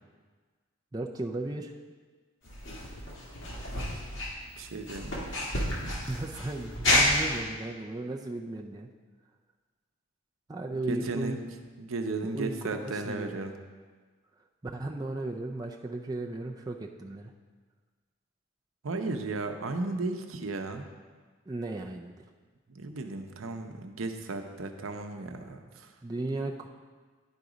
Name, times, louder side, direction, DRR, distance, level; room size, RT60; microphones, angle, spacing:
voice 1, 0.9-1.7 5.1-5.2 6.1-8.9 10.5-11.4 12.2-13.3 14.6-17.3 21.5-22.1 26.0-26.7, right 2 dB, 20° right, 1 dB, 0.4 m, -35 dB
sound 1, 2.4-7.4, left 1 dB, 65° left, 1.8 m, -30 dB
voice 2, 4.6-5.4 10.7-11.4 11.8-13.5 18.8-20.9 22.7-25.9, right 3 dB, 90° right, 6 dB, 0.7 m, -35 dB
10.5 x 4.0 x 4.9 m, 1.4 s
head